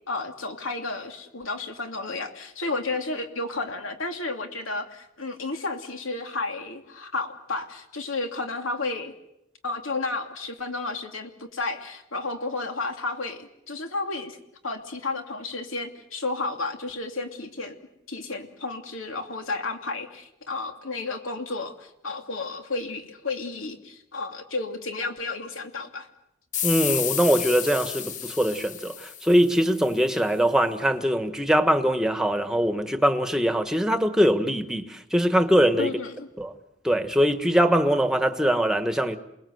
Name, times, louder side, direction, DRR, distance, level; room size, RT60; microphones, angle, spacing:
voice 1, 0.1-9.1 9.6-14.4 14.6-17.8 18.1-26.1 35.8-36.3, left 3 dB, 90° left, 2.8 m, -32 dB
sound 1, 26.5-29.8, left 9 dB, 40° left, 0.9 m, -31 dB
voice 2, 26.6-35.9 36.4-36.5 36.8-39.2, equal, 5° right, 1.3 m, -22 dB
28.5 x 20.0 x 7.9 m
head